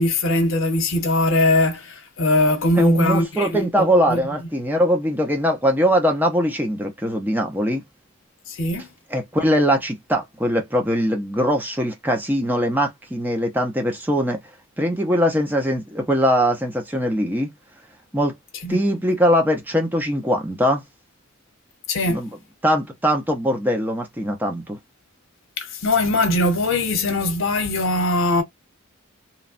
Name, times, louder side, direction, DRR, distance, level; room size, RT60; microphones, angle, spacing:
voice 1, 0.0-3.6 4.1-4.2 8.5-8.9 18.6-18.8 21.9-22.2 25.6-28.4, left 2 dB, 65° left, 1.0 m, -20 dB
voice 2, 2.8-7.8 9.1-14.4 14.8-17.5 18.1-18.3 18.7-20.8 22.1-22.3 22.6-24.8, equal, 10° right, 0.6 m, -21 dB
3.1 x 2.3 x 2.5 m
head